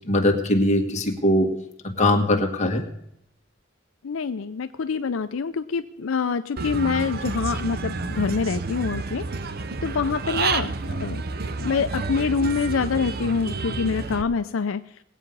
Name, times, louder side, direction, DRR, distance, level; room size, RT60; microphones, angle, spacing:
voice 1, 0.0-1.5 1.8-2.9, left 1 dB, 35° left, 2 dB, 1.8 m, -21 dB
voice 2, 4.0-9.2 9.8-11.2 11.6-14.8, left 5 dB, 75° left, 10 dB, 0.5 m, -26 dB
Human voice / Bird, 6.6-14.2, right 4 dB, 50° right, 0.8 m, -29 dB
19.5 x 8.3 x 5.5 m, 0.75 s
head